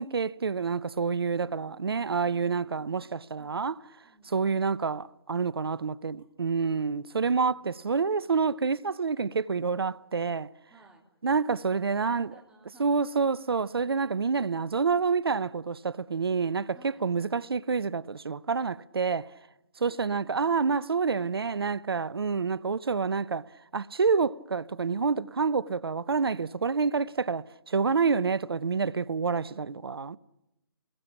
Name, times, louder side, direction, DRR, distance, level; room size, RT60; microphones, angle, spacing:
voice 1, 0.0-3.8 4.2-10.5 11.2-12.3 12.8-19.3 19.8-23.5 23.7-30.2, right 5 dB, 70° right, 0.8 m, -28 dB
voice 2, 1.4-3.6 4.0-4.7 7.5-8.2 10.7-11.1 11.6-13.0 16.7-17.0 19.8-20.4, right 3 dB, 5° right, 3.3 m, -58 dB
29.5 x 21.0 x 6.0 m
figure-of-eight pair, 145°, 13 cm